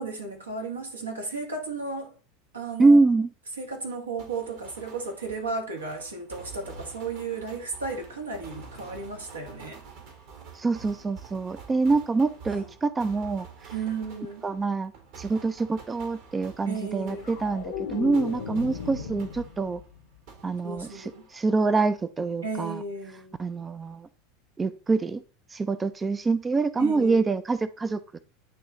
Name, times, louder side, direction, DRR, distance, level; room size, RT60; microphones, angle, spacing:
voice 1, 0.0-2.2 2.5-3.0 3.5-9.8 12.5-12.7 13.7-14.4 16.7-17.3 20.6-21.3 22.4-23.4 26.8-27.3, right 4 dB, 85° right, 1.4 m, -34 dB
voice 2, 2.8-3.3 10.5-13.5 14.4-14.9 15.2-19.8 20.4-22.8 23.4-24.1 24.6-25.2 25.5-28.2, right 3 dB, 20° right, 0.4 m, -25 dB
sound 1, 4.2-19.9 20.3-21.6, right 6 dB, 60° right, 1.6 m, -48 dB
sound 2, 16.9-20.1 20.4-20.8, left 6 dB, 70° left, 0.9 m, -36 dB
9.3 x 3.1 x 3.7 m
figure-of-eight pair, 80°, 0 cm